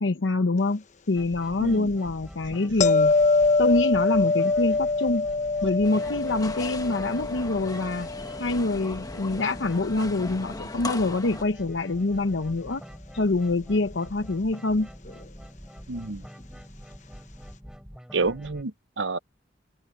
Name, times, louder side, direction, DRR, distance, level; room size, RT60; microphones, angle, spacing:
voice 1, 0.0-3.1 3.6-5.3 5.6-8.1 8.4-12.8 13.1-14.9, left 2 dB, 85° left, 0.8 m, -25 dB
sound 1, 1.2-18.6, equal, 5° right, 5.2 m, -45 dB
sound 2, 2.8-9.8 15.1-15.2, left 3 dB, 40° left, 1.0 m, -25 dB
sound 3, 5.8-11.4, left 2 dB, 20° left, 1.0 m, -38 dB
voice 2, 15.9-16.2 18.1-19.2, right 3 dB, 80° right, 0.9 m, -29 dB
head